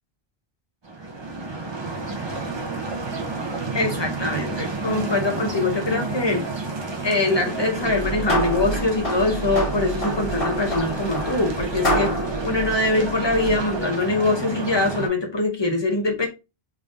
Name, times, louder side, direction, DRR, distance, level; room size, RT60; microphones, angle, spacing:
sound 1, 0.8-15.1, right 3 dB, 30° right, 0.7 m, -30 dB
voice 1, 3.7-6.4 7.0-12.1 12.4-16.3, left 2 dB, 25° left, 0.9 m, -23 dB
sound 2, 7.8-13.7, right 1 dB, 65° left, 1.9 m, -27 dB
3.7 x 3.6 x 2.4 m
omnidirectional pair, 1.0 m